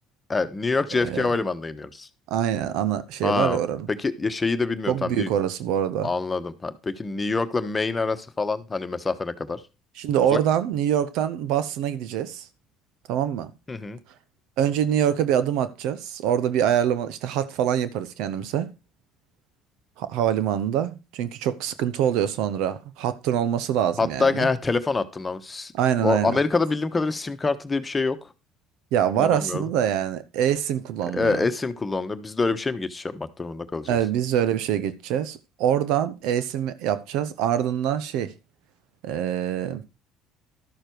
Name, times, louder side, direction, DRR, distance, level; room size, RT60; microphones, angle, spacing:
voice 1, 0.3-2.1 3.2-3.6 3.9-5.3 6.0-9.6 10.3-10.4 13.7-14.0 24.0-25.7 26.0-28.2 29.2-29.7 31.1-34.0, left 3 dB, 25° left, 1.2 m, -26 dB
voice 2, 0.9-1.3 2.3-3.9 4.9-6.1 10.0-12.4 13.1-13.5 14.6-18.7 20.0-24.5 25.8-26.4 28.9-31.4 33.9-38.3 39.0-39.8, right 10 dB, 75° right, 0.9 m, -25 dB
12.5 x 6.7 x 4.6 m
supercardioid pair, 75°, 0 cm